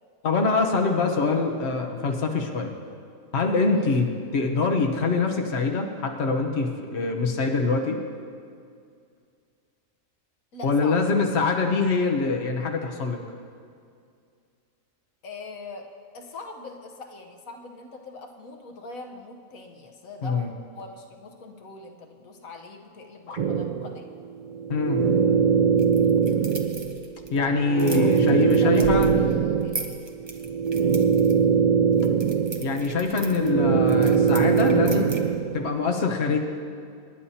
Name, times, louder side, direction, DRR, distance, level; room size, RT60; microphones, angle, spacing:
voice 1, 0.2-2.7 3.3-8.0 10.6-13.2 20.2-20.5 23.3-23.4 24.7-25.1 27.3-29.2 32.6-35.1 35.5-36.4, left 4 dB, 55° left, 1 dB, 1.3 m, -24 dB
voice 2, 10.5-11.0 15.2-15.9 16.1-20.4 20.7-24.0 27.4-30.1 34.8-35.1, left 3 dB, 85° left, 2 dB, 1.5 m, -42 dB
sound 1, 23.4-35.7, right 6 dB, 90° right, 0.4 m, -22 dB
sound 2, 25.8-35.6, right 2 dB, 20° right, 0.9 m, -40 dB
27.0 x 10.5 x 2.9 m, 2.3 s
omnidirectional pair, 1.4 m